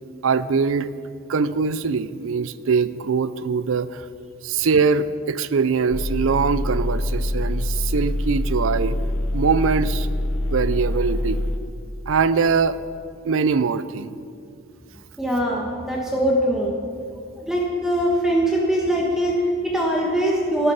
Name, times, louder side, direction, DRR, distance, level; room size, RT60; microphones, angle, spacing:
voice 1, 0.2-0.9 1.3-4.1 4.4-9.0 9.3-10.1 10.5-11.4 12.1-12.8 13.2-14.1, right 5 dB, 80° right, 15 dB, 0.5 m, -22 dB
sound 1, 5.9-11.6, left 1 dB, 80° left, 1.0 m, -25 dB
voice 2, 15.2-16.8 17.4-20.7, right 1 dB, ahead, -2 dB, 1.2 m, -22 dB
14.5 x 11.0 x 5.6 m, 2.4 s
head